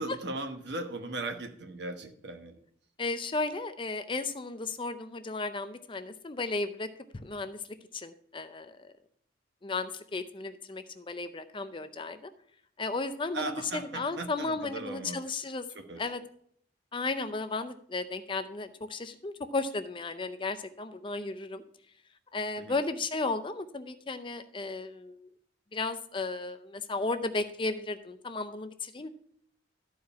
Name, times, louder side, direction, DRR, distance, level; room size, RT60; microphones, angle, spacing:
voice 1, 0.0-2.5 13.3-15.2 15.7-16.1 22.6-22.8, right 2 dB, 60° right, 7 dB, 1.1 m, -38 dB
voice 2, 3.0-6.9 7.1-7.6 7.9-8.9 9.6-12.3 12.8-15.7 16.0-16.2 16.9-21.6 22.3-25.3 25.7-29.1, left 3 dB, 25° left, 10 dB, 0.5 m, -34 dB
12.5 x 4.8 x 5.5 m, 0.65 s
head